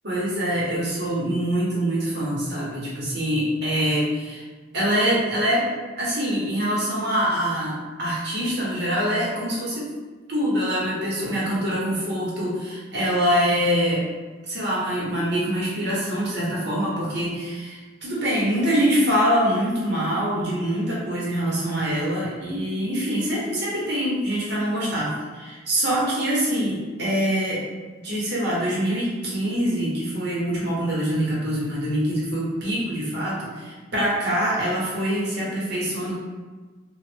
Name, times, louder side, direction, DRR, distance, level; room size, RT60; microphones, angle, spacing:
voice 1, 0.0-4.4 4.7-5.7 6.0-9.9 10.3-14.0 14.4-27.6 28.0-36.1, equal, 55° right, -6 dB, 1.0 m, -24 dB
3.0 x 2.4 x 3.3 m, 1.4 s
head